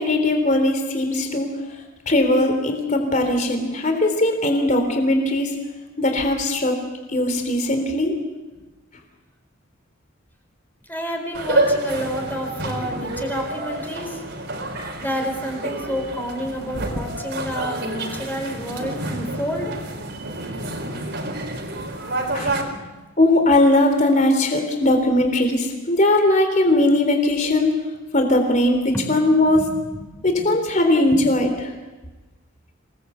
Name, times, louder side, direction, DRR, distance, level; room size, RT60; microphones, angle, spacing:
voice 1, 0.0-1.5 2.1-5.5 6.0-6.9 7.1-8.2 22.3-22.6 23.2-27.8 28.1-29.7 30.2-31.5, left 1 dB, 35° left, 5 dB, 3.6 m, -19 dB
voice 2, 10.9-14.2 15.0-19.8 22.5-22.9 28.9-29.1 29.5-30.1 31.1-31.2, equal, 10° left, 3 dB, 4.4 m, -29 dB
sound 1, 11.3-22.6, right 1 dB, 55° right, 4.2 m, -28 dB
26.5 x 20.0 x 8.2 m, 1.2 s
head